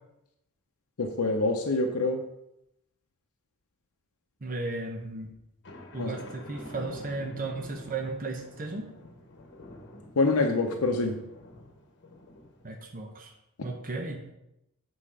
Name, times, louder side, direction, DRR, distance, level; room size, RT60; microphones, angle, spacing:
voice 1, 1.0-2.2 6.0-6.2 10.2-11.2, left 3 dB, 75° left, 3 dB, 0.7 m, -26 dB
voice 2, 4.4-5.3 5.9-8.9 12.6-13.3 13.6-14.2, right 3 dB, 40° right, 2 dB, 0.9 m, -35 dB
sound 1, 5.6-12.8, left 1 dB, 55° left, 1.1 m, -47 dB
7.8 x 4.3 x 4.8 m, 0.86 s
head